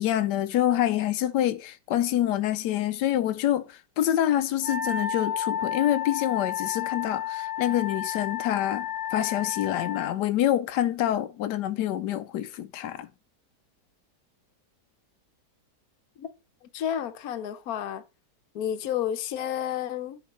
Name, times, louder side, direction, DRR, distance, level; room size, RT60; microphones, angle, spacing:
voice 1, 0.0-13.1, left 12 dB, 90° left, 1.2 m, -26 dB
Wind instrument woodwind instrument, 4.6-10.2, left 9 dB, 15° left, 0.8 m, -31 dB
voice 2, 16.7-18.0 18.5-20.2, left 10 dB, 65° left, 1.3 m, -31 dB
9.9 x 4.2 x 4.2 m
omnidirectional pair, 1.8 m